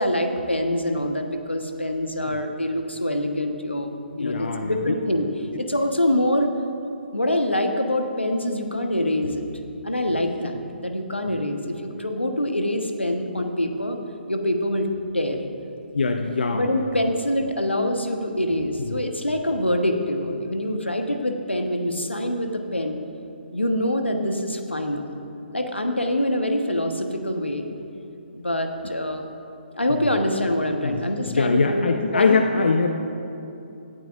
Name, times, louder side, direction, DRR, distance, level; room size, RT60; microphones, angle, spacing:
voice 1, 0.0-3.9 4.2-5.3 5.6-6.5 7.1-9.4 9.8-14.0 14.3-15.4 16.5-23.0 23.5-25.1 25.5-27.7 28.4-29.3 29.7-32.4, left 1 dB, 90° left, 5 dB, 1.2 m, -25 dB
voice 2, 4.1-4.8 11.3-11.4 15.9-16.7 18.9-19.0 28.8-28.9 29.9-30.1 30.8-32.9, left 4 dB, 65° left, 5 dB, 0.7 m, -23 dB
17.5 x 12.0 x 2.5 m, 2.8 s
figure-of-eight pair, 135°, 6 cm